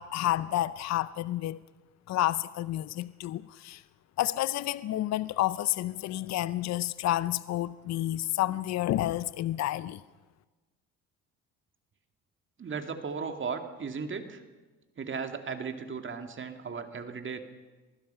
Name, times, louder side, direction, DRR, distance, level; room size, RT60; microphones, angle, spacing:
voice 1, 0.0-1.6 2.1-3.8 4.2-10.0, left 14 dB, 55° left, 0.6 m, -30 dB
voice 2, 12.6-14.4 15.0-17.4, right 5 dB, 40° right, 2.3 m, -36 dB
26.0 x 19.5 x 5.7 m
supercardioid pair, 80°, 31 cm